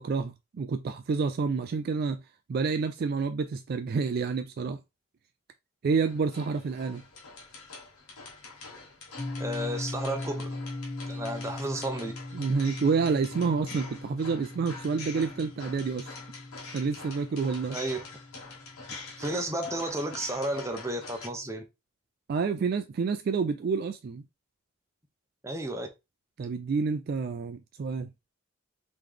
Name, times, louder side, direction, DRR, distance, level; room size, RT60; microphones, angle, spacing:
voice 1, 0.0-2.2 2.5-4.8 5.8-7.0 12.3-16.1 16.7-17.8 22.3-24.2 26.4-28.1, right 5 dB, 45° right, 0.3 m, -29 dB
sound 1, 6.1-21.3, left 4 dB, 85° left, 1.3 m, -45 dB
sound 2, 9.2-19.3, left 2 dB, 20° left, 1.4 m, -40 dB
voice 2, 9.4-10.6 11.1-12.1 17.7-18.0 19.2-21.6 25.4-25.9, right 1 dB, 15° right, 0.6 m, -32 dB
3.8 x 3.1 x 3.3 m
head